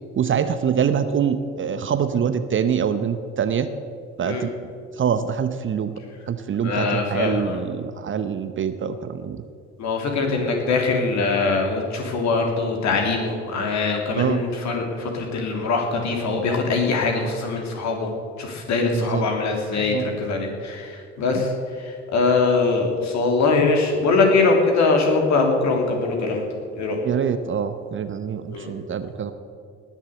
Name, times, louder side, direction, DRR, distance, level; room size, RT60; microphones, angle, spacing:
voice 1, 0.2-3.7 4.2-4.5 5.0-5.9 6.3-9.4 14.1-14.4 18.9-19.3 19.8-20.1 21.3-21.5 27.0-29.3, right 7 dB, 35° right, 10 dB, 0.9 m, -24 dB
voice 2, 6.6-7.6 9.8-18.1 18.4-21.5 21.8-26.4 26.8-27.0 28.5-28.7, left 3 dB, 50° left, 2 dB, 3.2 m, -22 dB
19.0 x 7.3 x 8.1 m, 2.3 s
figure-of-eight pair, 55°, 36 cm